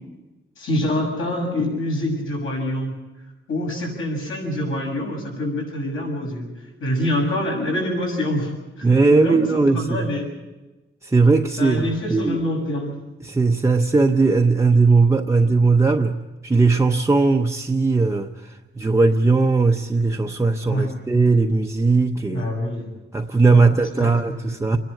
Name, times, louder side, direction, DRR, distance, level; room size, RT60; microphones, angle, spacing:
voice 1, 0.6-2.9 3.5-6.5 6.8-10.3 11.6-13.0 20.7-20.9 22.3-22.9 23.5-23.7 24.0-24.4, left 1 dB, 70° left, 0 dB, 6.9 m, -25 dB
voice 2, 8.8-10.1 11.0-12.4 13.2-16.2 16.4-22.5 23.1-24.8, right 3 dB, 15° right, 2 dB, 0.7 m, -18 dB
28.0 x 10.5 x 10.0 m, 1.1 s
wide cardioid pair, 160°, 21 cm